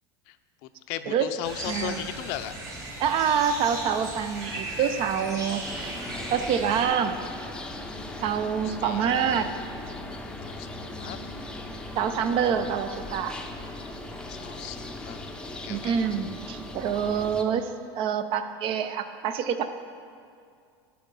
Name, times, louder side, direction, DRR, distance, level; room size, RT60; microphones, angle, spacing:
voice 1, 0.9-2.5 8.8-9.6 10.5-11.2 14.3-15.3 15.6-16.0, left 12 dB, 60° left, 10 dB, 0.5 m, -37 dB
sound 1, 1.4-6.9, right 1 dB, 25° right, 2.1 m, -37 dB
voice 2, 1.7-2.0 3.0-5.6 6.3-7.2 8.2-9.5 12.0-13.4 15.7-19.7, right 7 dB, 45° right, 10 dB, 0.5 m, -26 dB
sound 2, 5.6-17.4, left 2 dB, 5° left, 0.6 m, -38 dB
11.0 x 4.5 x 5.4 m, 2.3 s
supercardioid pair, 125°, 13 cm